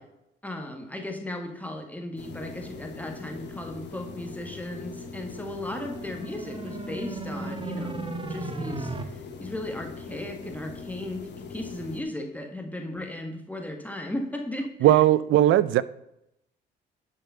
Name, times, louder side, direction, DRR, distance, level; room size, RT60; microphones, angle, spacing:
voice 1, 0.4-15.0, left 1 dB, 10° left, 1.7 m, -36 dB
sound 1, 2.2-12.0, left 5 dB, 60° left, 1.7 m, -41 dB
sound 2, 5.8-9.0, right 3 dB, 25° right, 1.2 m, -35 dB
voice 2, 14.8-15.8, right 13 dB, 80° right, 0.6 m, -18 dB
11.0 x 5.5 x 5.7 m
cardioid pair, 90°, 20 cm